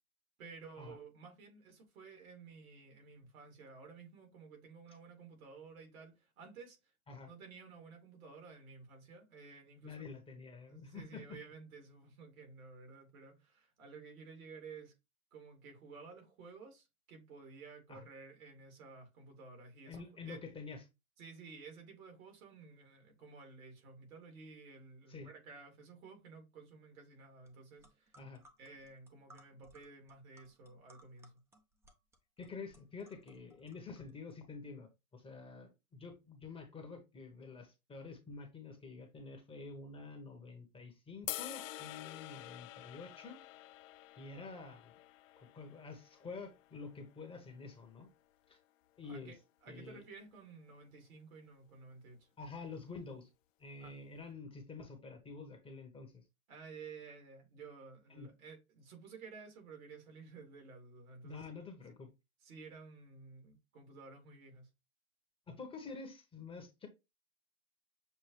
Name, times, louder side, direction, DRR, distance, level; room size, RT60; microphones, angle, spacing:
voice 1, 0.4-6.9 7.3-10.1 10.7-14.9 15.3-20.4 21.2-28.2 28.6-31.3 49.0-52.3 53.8-53.9 56.5-61.5 62.4-64.7, right 4 dB, 75° right, 2.7 m, -53 dB
voice 2, 9.8-11.4 17.9-18.0 19.9-20.8 25.1-25.3 28.2-28.4 32.4-34.9 35.1-43.4 44.2-44.9 45.4-48.1 48.5-48.6 49.0-49.3 49.7-50.0 52.4-53.3 53.6-56.2 58.1-58.3 61.2-62.1 65.5-66.9, left 4 dB, 15° left, 1.0 m, -48 dB
sound 1, 27.5-27.6 27.8-34.3, right 1 dB, 5° right, 0.6 m, -65 dB
sound 2, 41.3-47.5, left 16 dB, 65° left, 0.5 m, -48 dB
6.7 x 2.6 x 3.1 m
hypercardioid pair, 130°, 42 cm